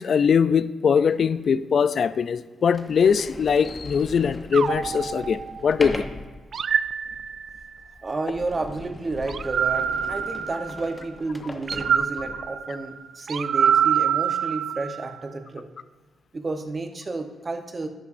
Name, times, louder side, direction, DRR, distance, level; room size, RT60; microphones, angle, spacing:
voice 1, 0.0-6.0, left 6 dB, 55° left, 15 dB, 0.3 m, -21 dB
Sliding door, 1.3-1.4 2.1-2.2 2.7-12.6, left 2 dB, 20° left, 0.8 m, -39 dB
sound 1, 4.5-5.9 6.5-7.8 9.3-11.0 11.7-15.2, right 8 dB, 60° right, 0.3 m, -26 dB
voice 2, 8.0-15.7 16.3-17.9, right 3 dB, 30° right, 6 dB, 0.9 m, -31 dB
11.5 x 9.7 x 2.6 m, 1.3 s
cardioid pair, 120°, 0 cm